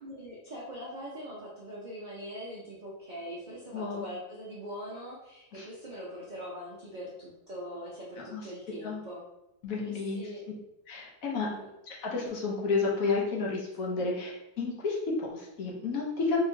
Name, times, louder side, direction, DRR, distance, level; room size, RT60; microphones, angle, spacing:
voice 1, 0.0-9.2 9.8-10.4 11.5-11.7 14.0-14.1, equal, 65° right, -7 dB, 0.4 m, -42 dB
voice 2, 3.7-4.1 5.5-5.7 8.2-8.4 8.8-9.0 9.6-10.3 10.9-11.5 11.9-14.3 14.6-16.4, left 4 dB, 65° left, -3 dB, 1.1 m, -31 dB
3.1 x 2.8 x 2.6 m, 0.89 s
omnidirectional pair, 1.7 m